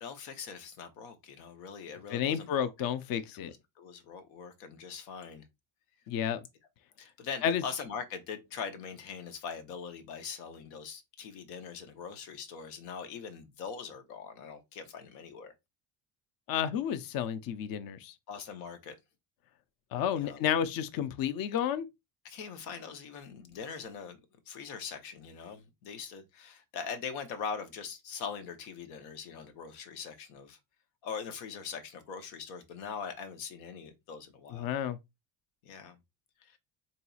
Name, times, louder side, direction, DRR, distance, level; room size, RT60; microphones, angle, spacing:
voice 1, 0.0-2.9 3.3-5.4 7.0-15.5 18.3-19.0 20.1-20.4 22.2-24.2 24.5-30.6 31.0-34.7 35.6-36.0 36.4-36.6, left 6 dB, 80° left, 0.9 m, -42 dB
voice 2, 2.1-3.5 6.1-6.4 7.4-7.6 16.5-18.1 19.9-21.9 34.5-35.0, left 9 dB, 45° left, 0.6 m, -31 dB
4.0 x 2.7 x 2.3 m
supercardioid pair, 75°, 48 cm